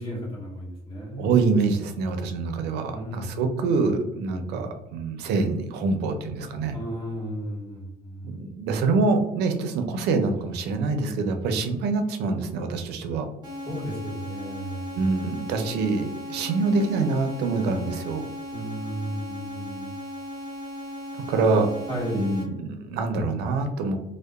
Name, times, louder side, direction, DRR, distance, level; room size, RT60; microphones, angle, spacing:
voice 1, 0.0-1.3 2.9-3.6 6.7-8.4 13.7-14.9 18.5-19.9 21.9-22.5, equal, 35° left, -5 dB, 1.4 m, -34 dB
voice 2, 1.2-6.8 8.2-13.3 14.9-18.2 21.1-21.7 22.1-24.0, right 4 dB, 80° right, 6 dB, 0.4 m, -25 dB
sound 1, 13.4-22.4, left 1 dB, 25° right, 0.8 m, -37 dB
2.7 x 2.0 x 2.3 m, 0.88 s
cardioid pair, 110°, 17 cm